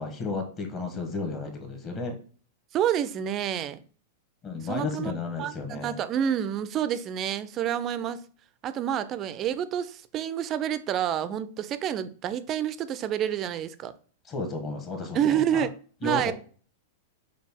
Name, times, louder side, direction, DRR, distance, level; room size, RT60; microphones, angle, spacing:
voice 1, 0.0-2.2 4.4-6.0 14.3-15.6 16.0-16.3, left 3 dB, 25° left, 1.0 m, -33 dB
voice 2, 2.7-3.8 4.6-5.1 5.4-8.2 8.6-13.9 15.1-15.7 16.0-16.3, right 9 dB, 30° right, 0.3 m, -28 dB
5.2 x 2.3 x 3.4 m
supercardioid pair, 140°, 0 cm